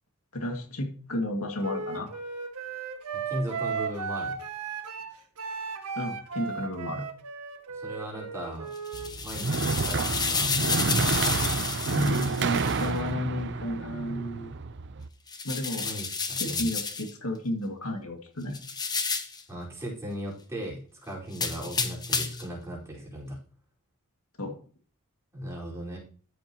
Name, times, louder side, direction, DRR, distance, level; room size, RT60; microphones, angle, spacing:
voice 1, 0.3-2.1 6.0-7.1 11.9-14.5 15.4-15.9 16.4-18.6 24.4-24.6, left 1 dB, 75° left, 3 dB, 2.1 m, -32 dB
Wind instrument woodwind instrument, 1.6-9.1, right 5 dB, 85° right, 1.6 m, -35 dB
voice 2, 3.2-4.4 7.7-8.7 9.2-10.6 15.8-16.7 19.5-23.4 25.3-26.0, right 1 dB, 15° right, -5 dB, 4.6 m, -37 dB
sound 1, 8.8-12.9 15.3-17.1 18.5-19.4 21.3-22.5, left 4 dB, 20° left, 1.0 m, -31 dB
sound 2, 8.9-15.1, right 4 dB, 55° right, 0.6 m, -29 dB
13.5 x 8.0 x 3.0 m, 0.41 s
head